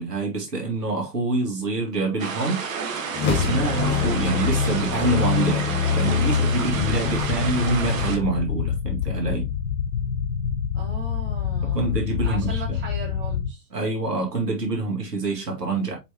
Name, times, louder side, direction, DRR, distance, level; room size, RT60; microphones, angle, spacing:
voice 1, 0.0-2.6 3.2-9.5 11.6-12.8 13.7-15.9, right 3 dB, 75° right, 2.3 m, -26 dB
sound 1, 2.2-8.2, right 5 dB, 55° right, 1.5 m, -31 dB
sound 2, 3.1-8.5, left 6 dB, 20° left, 1.8 m, -25 dB
sound 3, 6.7-13.5, left 8 dB, 60° left, 0.8 m, -27 dB
voice 2, 10.7-13.7, right 1 dB, 20° right, 3.1 m, -38 dB
6.7 x 4.8 x 2.9 m
figure-of-eight pair, 110°, 49 cm